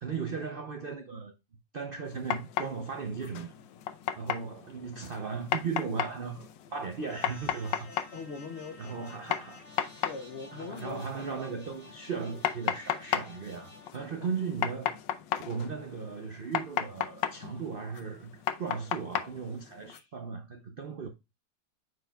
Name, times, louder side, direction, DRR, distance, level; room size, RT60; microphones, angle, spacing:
voice 1, 0.0-1.3 1.7-3.5 4.2-7.9 8.8-9.6 10.5-14.9 15.4-18.3 18.6-21.1, right 5 dB, 75° right, 0.5 m, -37 dB
sound 1, 2.1-20.0, left 10 dB, 85° left, 1.4 m, -36 dB
sound 2, 7.0-13.9, left 2 dB, 20° left, 1.7 m, -53 dB
voice 2, 7.8-9.2 10.0-11.6 14.2-14.6, left 5 dB, 65° left, 0.6 m, -43 dB
9.3 x 4.8 x 2.3 m
omnidirectional pair, 2.0 m